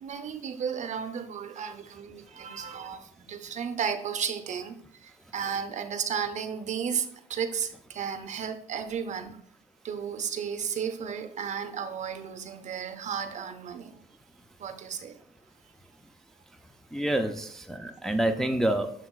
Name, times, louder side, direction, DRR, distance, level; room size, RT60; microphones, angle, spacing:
voice 1, 0.0-4.8 5.3-7.0 7.3-9.3 9.8-13.9 14.6-15.1, right 7 dB, 45° right, 9 dB, 0.7 m, -33 dB
voice 2, 16.9-18.9, right 1 dB, ahead, 5 dB, 0.4 m, -27 dB
7.1 x 5.8 x 2.4 m, 0.65 s
cardioid pair, 110°, 17 cm